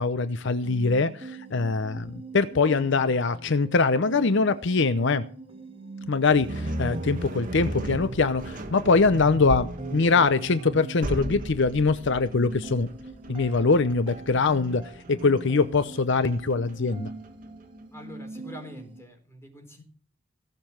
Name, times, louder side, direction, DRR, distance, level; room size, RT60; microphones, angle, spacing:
voice 1, 0.0-5.2 6.1-12.9 13.3-17.1, left 4 dB, 65° left, 12 dB, 0.7 m, -23 dB
sound 1, 0.6-19.0, right 3 dB, 30° right, 2.4 m, -43 dB
sound 2, 6.3-17.4, right 1 dB, 45° right, 2.4 m, -36 dB
voice 2, 17.9-19.8, left 1 dB, 15° left, 3 dB, 4.1 m, -45 dB
17.5 x 6.9 x 7.5 m, 0.42 s
head